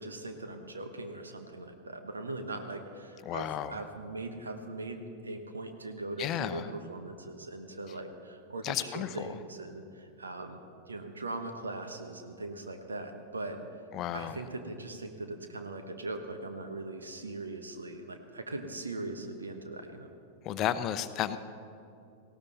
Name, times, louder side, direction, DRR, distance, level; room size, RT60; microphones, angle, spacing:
voice 1, 0.0-10.6 10.9-13.6 14.1-20.1, right 2 dB, 75° right, 6 dB, 1.1 m, -40 dB
voice 2, 3.2-3.8 6.2-6.7 8.6-9.4 13.9-14.4 20.4-21.4, left 11 dB, 35° left, 12 dB, 0.7 m, -33 dB
18.5 x 17.0 x 4.2 m, 2.6 s
figure-of-eight pair, 90°, 0 cm